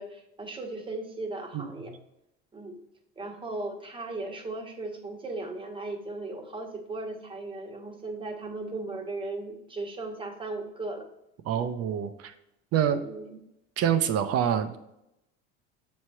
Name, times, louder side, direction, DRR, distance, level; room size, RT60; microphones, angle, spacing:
voice 1, 0.0-1.9 2.5-2.8 3.2-11.0 11.5-11.6 13.0-13.4, right 2 dB, 15° right, 2 dB, 1.2 m, -37 dB
voice 2, 1.5-1.9 11.5-12.3 12.7-13.0 13.8-14.8, right 9 dB, 50° right, 9 dB, 0.7 m, -26 dB
7.2 x 3.2 x 4.4 m, 0.83 s
supercardioid pair, 95°, 32 cm